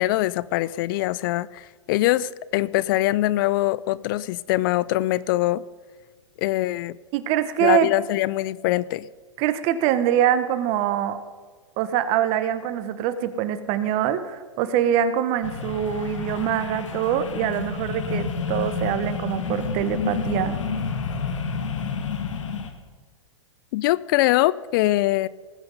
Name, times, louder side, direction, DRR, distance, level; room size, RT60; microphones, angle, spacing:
voice 1, 0.0-5.6 6.4-7.0 7.6-9.1 23.7-25.3, left 16 dB, 45° left, 21 dB, 0.4 m, -23 dB
voice 2, 7.1-7.9 9.4-11.2 11.8-20.6, right 10 dB, 40° right, 12 dB, 1.1 m, -24 dB
sound 1, 15.4-22.7, left 5 dB, 80° left, 1.8 m, -29 dB
19.0 x 7.9 x 5.4 m, 1.5 s
hypercardioid pair, 125°, 16 cm